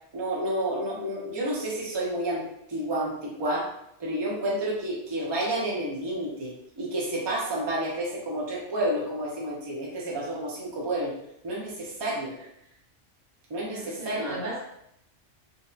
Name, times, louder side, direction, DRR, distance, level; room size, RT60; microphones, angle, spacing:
voice 1, 0.1-2.4 2.7-3.7 4.0-11.1 11.4-12.3 13.5-14.4, right 1 dB, 35° right, -3 dB, 0.4 m, -30 dB
voice 2, 13.6-14.7, right 1 dB, 85° right, -6 dB, 1.4 m, -36 dB
2.7 x 2.1 x 2.4 m, 0.75 s
omnidirectional pair, 1.2 m